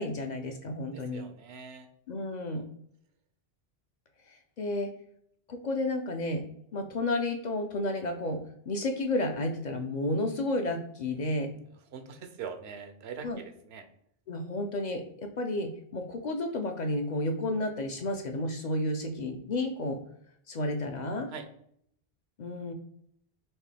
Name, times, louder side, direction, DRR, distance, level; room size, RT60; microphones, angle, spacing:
voice 1, 0.0-1.3 2.1-2.6 4.3-4.9 5.5-6.4 6.7-8.4 8.7-11.5 13.2-13.4 14.3-20.0 20.5-21.3 22.4-22.7, left 1 dB, 55° left, 4 dB, 0.6 m, -31 dB
voice 2, 0.9-1.9 2.5-2.6 11.9-13.8 21.3-21.4, right 6 dB, 85° right, 7 dB, 0.9 m, -43 dB
4.5 x 2.9 x 3.2 m, 0.69 s
omnidirectional pair, 1.1 m